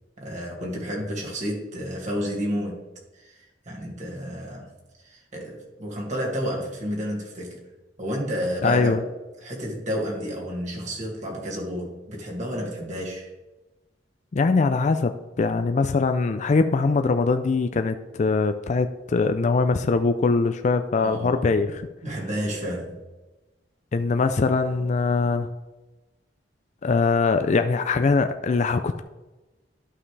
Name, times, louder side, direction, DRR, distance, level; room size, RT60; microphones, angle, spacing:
voice 1, 0.2-2.8 3.1-4.7 5.0-7.6 8.0-9.0 9.4-13.3 21.0-21.4 22.0-23.0, equal, 45° right, -2 dB, 2.2 m, -31 dB
voice 2, 8.6-9.0 14.3-21.9 23.9-25.5 26.8-29.0, left 4 dB, 40° left, 8 dB, 0.4 m, -22 dB
12.0 x 5.5 x 3.3 m, 1.1 s
head